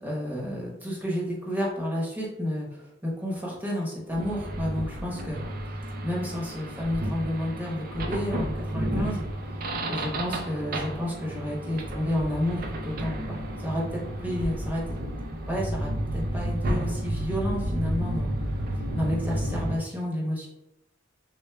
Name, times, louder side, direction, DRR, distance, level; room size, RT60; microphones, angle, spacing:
voice 1, 0.0-5.7 6.0-9.2 9.9-15.0 15.5-20.5, equal, 10° right, -4 dB, 1.0 m, -31 dB
sound 1, 4.1-19.8, right 1 dB, 45° right, 0.5 m, -31 dB
6.3 x 2.2 x 2.2 m, 0.89 s
head